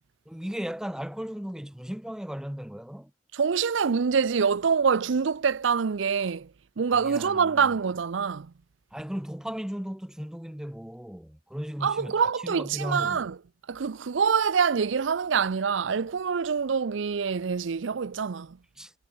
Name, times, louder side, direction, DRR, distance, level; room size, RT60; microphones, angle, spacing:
voice 1, 0.3-3.1 6.9-7.8 8.9-12.1 12.4-13.3 18.8-18.9, equal, 5° right, 0.5 m, -36 dB
voice 2, 3.3-6.5 6.8-8.5 11.8-13.4 13.7-18.6, right 6 dB, 85° right, 0.5 m, -25 dB
head